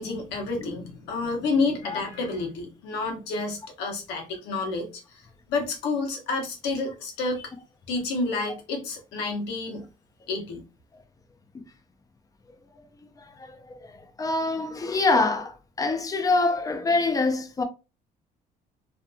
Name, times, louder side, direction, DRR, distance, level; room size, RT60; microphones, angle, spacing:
voice 1, 0.0-5.2 5.5-7.5 7.9-9.8 10.3-10.6, left 3 dB, 90° left, 0.8 m, -29 dB
voice 2, 13.2-13.6 13.8-13.9 14.2-17.6, left 3 dB, 20° left, 0.5 m, -25 dB
2.6 x 2.6 x 2.2 m
cardioid pair, 110°, 17 cm